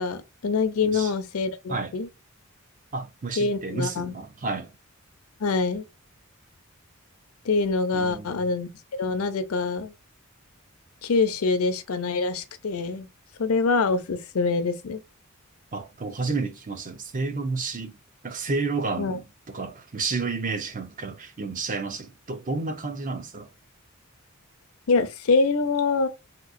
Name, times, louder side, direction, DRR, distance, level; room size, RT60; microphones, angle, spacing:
voice 1, 0.0-2.1 3.4-4.1 5.4-5.8 7.4-8.7 9.0-9.9 11.0-13.1 13.4-15.0 19.0-19.2 24.9-26.1, left 4 dB, 80° left, 0.5 m, -25 dB
voice 2, 2.9-4.7 7.9-8.5 15.7-18.0 18.2-23.5, right 4 dB, 40° right, 0.6 m, -31 dB
3.4 x 2.9 x 2.5 m
head